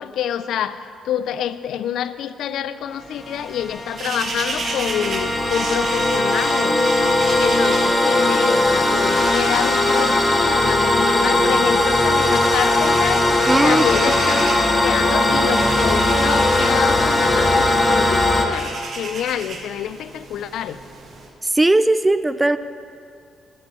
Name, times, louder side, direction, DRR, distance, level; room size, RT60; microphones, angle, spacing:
voice 1, 0.0-6.8 7.4-20.8, left 10 dB, 75° left, 14 dB, 0.4 m, -27 dB
sound 1, 3.0-21.3, right 3 dB, 55° right, 1.3 m, -34 dB
sound 2, 3.2-18.4, left 2 dB, 25° left, 0.9 m, -19 dB
voice 2, 13.5-13.8 21.4-22.6, right 2 dB, 15° right, 13 dB, 0.4 m, -17 dB
11.0 x 7.0 x 5.6 m, 2.5 s
cardioid pair, 90°, 0 cm